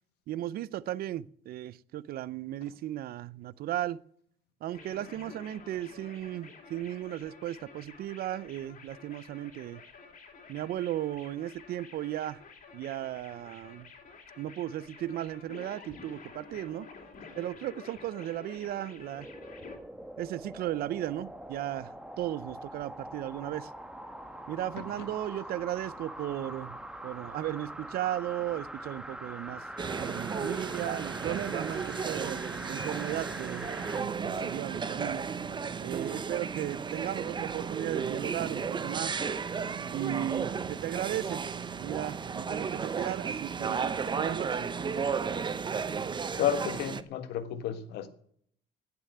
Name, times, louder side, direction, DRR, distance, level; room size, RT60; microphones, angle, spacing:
voice 1, 0.3-4.0 4.6-9.8 10.5-12.4 12.7-13.9 14.4-16.9 17.4-19.3 20.2-21.9 22.2-23.7 24.5-26.8 27.0-29.6 30.0-32.4 32.7-33.7 34.0-35.2 35.8-39.2 39.9-41.4 41.8-44.6, right 13 dB, 65° right, 0.6 m, -35 dB
sound 1, 4.7-19.8, left 5 dB, 50° left, 3.3 m, -50 dB
sound 2, 19.1-34.1 34.5-34.6, right 1 dB, 5° right, 1.2 m, -43 dB
sound 3, 29.8-47.0, right 6 dB, 25° right, 0.8 m, -34 dB
voice 2, 46.4-48.1, left 10 dB, 80° left, 1.4 m, -31 dB
16.0 x 7.0 x 9.2 m
cardioid pair, 110°, 17 cm